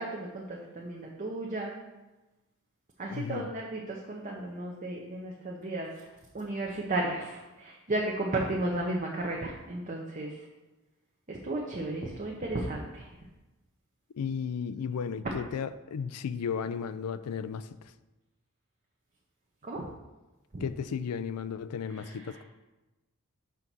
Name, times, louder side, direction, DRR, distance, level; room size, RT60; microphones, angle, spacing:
voice 1, 0.0-1.7 3.0-6.1 6.3-10.3 11.3-13.1 19.6-19.9 20.5-20.6 21.9-22.4, right 2 dB, 35° right, -1 dB, 0.7 m, -34 dB
voice 2, 3.1-3.5 14.2-17.9 20.6-22.4, left 6 dB, 85° left, 13 dB, 0.4 m, -34 dB
5.7 x 3.9 x 6.0 m, 1.1 s
head